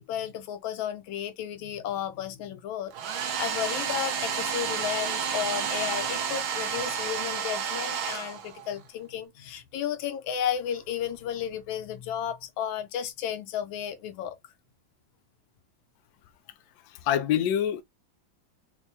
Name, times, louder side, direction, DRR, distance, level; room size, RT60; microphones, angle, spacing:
voice 1, 0.0-14.3, left 9 dB, 90° left, 1.4 m, -33 dB
Domestic sounds home sounds, 2.9-8.8, right 7 dB, 85° right, 1.6 m, -31 dB
voice 2, 16.9-17.8, left 10 dB, 75° left, 0.9 m, -26 dB
4.4 x 2.1 x 2.7 m
omnidirectional pair, 2.1 m